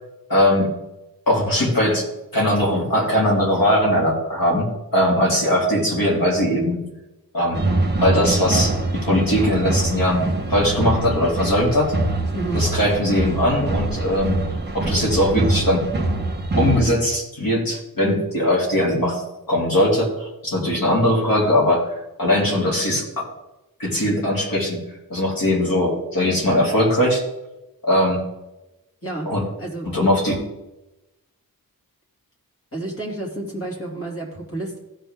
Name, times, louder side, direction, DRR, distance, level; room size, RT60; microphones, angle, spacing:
voice 1, 0.3-0.7 1.3-2.0 2.3-6.8 7.3-7.6 8.0-10.2 10.5-11.9 12.5-14.4 14.7-15.8 16.5-23.3 23.8-24.8 25.1-27.2 27.8-28.2 29.3-29.4 29.9-30.4, left 1 dB, 70° left, -3 dB, 3.1 m, -20 dB
sound 1, 7.5-16.8, right 2 dB, 30° right, 1.4 m, -24 dB
voice 2, 12.3-12.6 29.0-29.3 29.6-30.0 32.7-34.8, right 2 dB, 40° left, -2 dB, 3.0 m, -30 dB
15.0 x 5.6 x 3.8 m, 0.98 s
wide cardioid pair, 105°, 35 cm